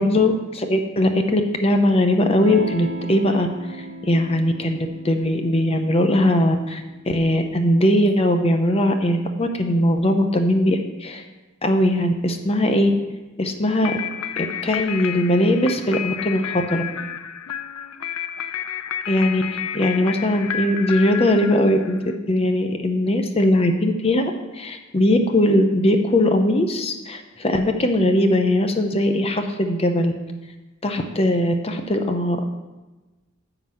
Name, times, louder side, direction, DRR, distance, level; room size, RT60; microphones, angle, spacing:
voice 1, 0.0-11.2 11.6-12.9 13.4-14.0 14.4-16.8 19.1-22.0 22.3-30.1 30.8-32.4, left 1 dB, 25° left, 6 dB, 0.6 m, -20 dB
Electric guitar / Strum, 2.3-7.5, equal, 80° right, 1.1 m, -37 dB
sound 1, 13.8-22.1, left 8 dB, 80° left, 0.5 m, -31 dB
9.6 x 4.0 x 7.4 m, 1.1 s
head